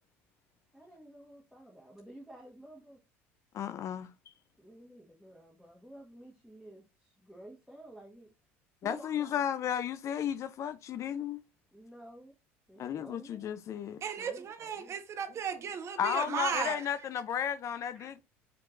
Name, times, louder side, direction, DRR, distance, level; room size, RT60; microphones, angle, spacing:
voice 1, 0.7-3.0 4.6-8.3 8.8-9.4 11.7-12.3 12.7-13.5 14.2-14.9 17.9-18.1, right 1 dB, ahead, 1.5 m, -52 dB
voice 2, 3.5-4.1 8.8-11.4 12.8-14.0 16.0-18.2, left 9 dB, 45° left, 0.4 m, -33 dB
voice 3, 14.0-16.9, right 7 dB, 45° right, 1.2 m, -35 dB
5.7 x 3.6 x 2.5 m
hypercardioid pair, 75°, 7 cm